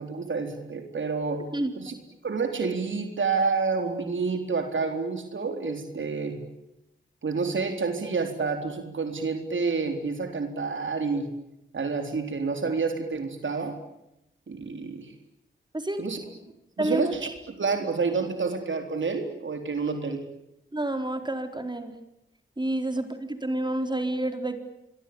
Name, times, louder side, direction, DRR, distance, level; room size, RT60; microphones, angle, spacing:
voice 1, 0.0-1.5 1.8-1.9 2.2-6.4 7.2-11.3 11.7-13.8 14.5-15.1 16.0-16.2 16.8-20.3, right 4 dB, 70° right, 6 dB, 3.9 m, -29 dB
voice 2, 15.7-16.1 16.8-17.0 20.7-21.9 22.6-24.6, right 1 dB, 20° right, 7 dB, 4.2 m, -29 dB
26.0 x 23.0 x 8.8 m, 0.85 s
cardioid pair, 50°, 20 cm